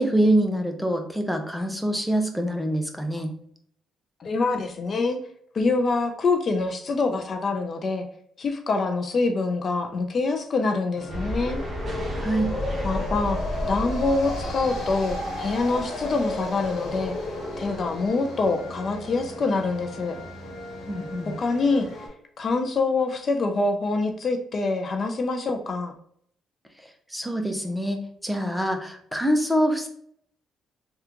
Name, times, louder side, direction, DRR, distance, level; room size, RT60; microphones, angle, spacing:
voice 1, 0.0-3.3 12.2-12.6 20.9-21.3 27.1-29.9, right 1 dB, ahead, 4 dB, 0.6 m, -25 dB
voice 2, 4.2-5.2 5.5-8.0 8.4-11.6 12.8-17.1 17.6-20.1 21.4-21.9 22.4-25.9, left 3 dB, 45° left, 5 dB, 0.4 m, -25 dB
sound 1, 11.0-22.1, left 2 dB, 60° left, 1.2 m, -34 dB
sound 2, 11.1-18.1, equal, 35° right, 1.0 m, -34 dB
3.5 x 2.3 x 2.8 m, 0.66 s
cardioid pair, 90°, 0 cm